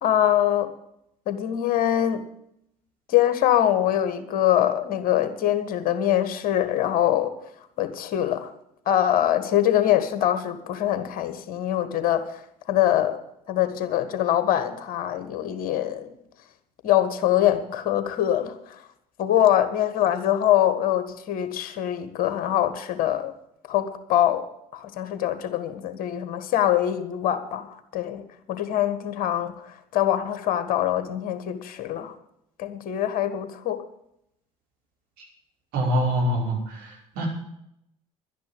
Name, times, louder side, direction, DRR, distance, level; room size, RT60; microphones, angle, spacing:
voice 1, 0.0-0.7 1.2-2.2 3.1-7.3 7.8-8.5 8.8-12.4 12.7-13.2 13.5-16.1 16.8-18.8 19.2-23.3 23.7-24.4 24.7-28.2 28.5-32.1 32.6-33.8, left 11 dB, 50° left, 10 dB, 1.7 m, -23 dB
voice 2, 35.7-37.3, equal, 55° right, -2 dB, 5.5 m, -25 dB
11.5 x 10.5 x 8.0 m, 0.78 s
figure-of-eight pair, 65°, 18 cm